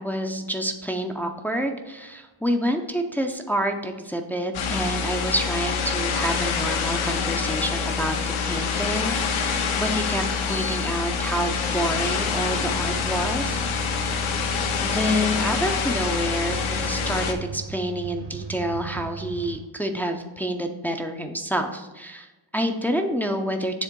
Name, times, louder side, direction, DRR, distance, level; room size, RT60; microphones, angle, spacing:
voice 1, 0.0-8.2 8.4-13.6 14.8-23.8, equal, 5° left, 4 dB, 0.5 m, -28 dB
sound 1, 4.5-17.3, left 6 dB, 90° left, 0.9 m, -26 dB
sound 2, 9.3-9.4 10.2-19.6, right 6 dB, 55° right, 1.1 m, -39 dB
7.4 x 3.5 x 5.2 m, 1.1 s
cardioid pair, 105°, 47 cm